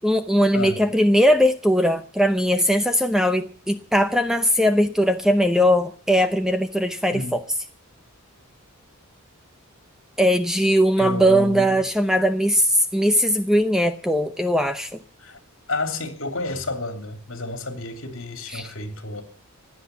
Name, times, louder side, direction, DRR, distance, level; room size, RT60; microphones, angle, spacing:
voice 1, 0.0-7.4 10.2-14.9 18.5-18.7, equal, ahead, 0.6 m, -20 dB
voice 2, 11.0-11.9 15.2-15.4 15.7-19.2, left 2 dB, 60° left, 2.9 m, -30 dB
16.0 x 10.0 x 8.2 m
head